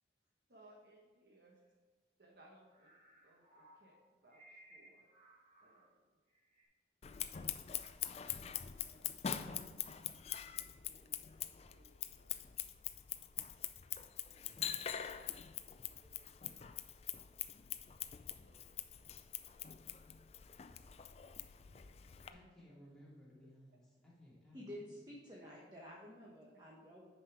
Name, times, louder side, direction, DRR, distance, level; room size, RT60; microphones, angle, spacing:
voice 1, 0.5-1.6 2.2-2.9 3.2-5.1 5.6-6.2 8.8-9.4 10.8-11.2 11.7-12.5 14.2-15.3 15.8-16.9 18.4-19.3 21.7-22.4 22.7-22.8 23.4-23.5 25.4-25.5 26.2-26.6, right 1 dB, 60° right, 1 dB, 1.1 m, -67 dB
sound 1, 2.6-5.9 6.3-6.6, right 1 dB, 40° right, 1.9 m, -63 dB
Scissors, 7.0-22.3, left 10 dB, 35° left, 0.3 m, -44 dB
voice 2, 22.3-25.2, equal, 5° left, -8 dB, 2.6 m, -60 dB
voice 3, 24.5-27.1, equal, 20° right, -4 dB, 1.1 m, -51 dB
9.0 x 5.6 x 4.7 m, 1.4 s
head